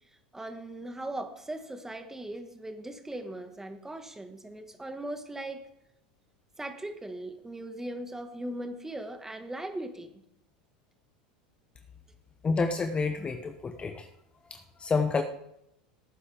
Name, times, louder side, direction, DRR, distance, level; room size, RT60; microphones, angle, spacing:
voice 1, 0.3-5.6 6.6-10.2, right 1 dB, 10° right, 7 dB, 1.8 m, -39 dB
voice 2, 12.4-14.1 14.5-15.2, left 4 dB, 25° left, 7 dB, 1.0 m, -29 dB
17.5 x 9.7 x 3.6 m, 0.80 s
hypercardioid pair, 90°, 4 cm